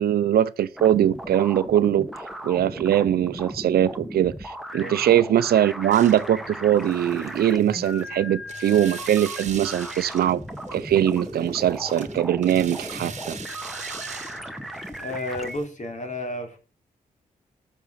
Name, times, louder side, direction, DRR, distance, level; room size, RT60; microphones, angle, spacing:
voice 1, 0.0-2.1 2.4-10.4 10.7-13.4, right 11 dB, 75° right, 0.6 m, -21 dB
sound 1, 0.8-15.6, equal, ahead, 1.5 m, -37 dB
sound 2, 5.9-15.6, right 5 dB, 45° right, 1.3 m, -42 dB
voice 2, 15.0-16.6, left 1 dB, 50° left, 3.1 m, -32 dB
13.5 x 6.2 x 4.0 m
supercardioid pair, 45°, 16 cm